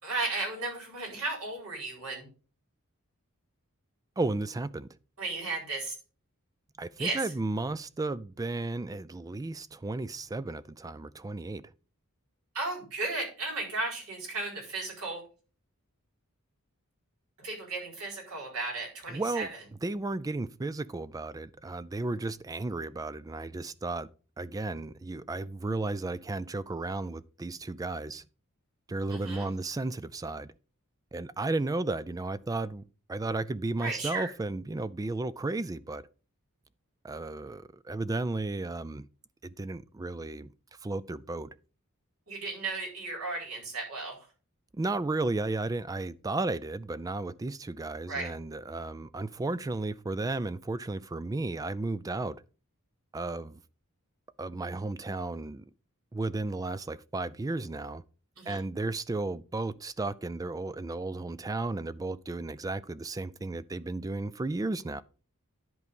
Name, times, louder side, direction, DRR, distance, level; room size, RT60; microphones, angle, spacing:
voice 1, 0.0-2.3 5.2-5.9 7.0-7.2 12.5-15.2 17.4-19.6 29.1-29.5 33.8-34.3 42.3-44.2 48.1-48.3 58.4-58.6, right 3 dB, 75° right, 4.6 m, -35 dB
voice 2, 4.2-4.9 6.8-11.6 19.1-19.5 19.8-24.1 24.4-28.2 28.9-30.5 31.1-32.8 33.1-36.1 37.0-39.1 39.4-40.5 40.8-41.6 44.7-52.4 53.1-53.6 54.4-55.6 56.1-58.0 58.5-65.0, right 2 dB, 15° right, 0.3 m, -34 dB
11.0 x 4.7 x 5.3 m
head